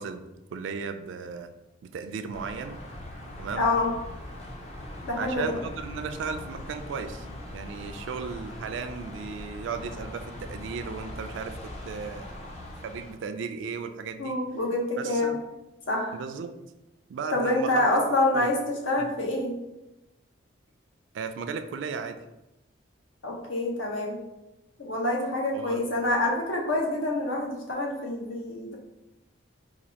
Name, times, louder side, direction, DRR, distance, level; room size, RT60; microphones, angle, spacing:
voice 1, 0.0-1.5 1.8-2.8 3.4-3.7 5.2-7.3 7.5-11.6 11.8-12.3 12.8-14.4 15.0-15.4 16.1-16.6 17.1-17.8 18.3-18.5 19.0-19.1 21.1-22.2 25.5-25.8, right 5 dB, 75° right, 8 dB, 0.3 m, -35 dB
sound 1, 2.3-13.1, left 1 dB, 35° left, 0.4 m, -41 dB
voice 2, 3.6-3.9 5.0-5.5 14.2-15.3 15.9-16.1 17.3-19.6 23.2-24.2 24.8-28.7, left 2 dB, 80° left, -1 dB, 0.8 m, -26 dB
4.1 x 2.4 x 2.8 m, 0.96 s
head